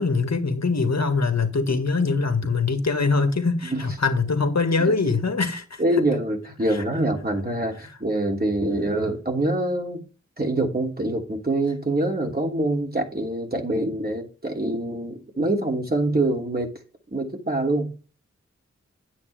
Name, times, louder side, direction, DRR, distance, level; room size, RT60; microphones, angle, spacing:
voice 1, 0.0-5.8 6.7-6.8, left 4 dB, 65° left, 2.0 m, -23 dB
voice 2, 5.8-10.0 10.4-16.7 17.1-17.9, right 2 dB, 30° right, 3.0 m, -25 dB
9.7 x 8.5 x 3.6 m
cardioid pair, 45°, 29 cm